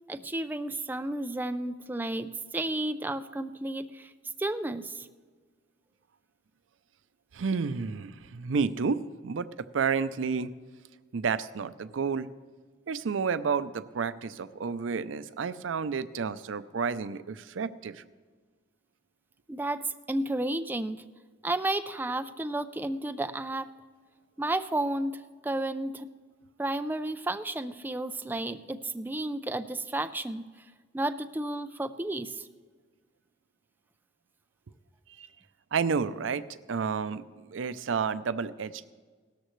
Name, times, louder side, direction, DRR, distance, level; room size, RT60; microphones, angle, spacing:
voice 1, 0.1-4.1 4.4-5.1 19.5-21.0 21.4-23.7 24.4-26.1 26.6-30.4 30.9-32.5, right 1 dB, 10° right, 10 dB, 0.3 m, -32 dB
voice 2, 7.3-10.5 11.1-12.3 12.9-18.0 35.2-35.3 35.7-38.9, right 5 dB, 90° right, 15 dB, 0.5 m, -31 dB
17.0 x 13.0 x 3.1 m, 1.5 s
head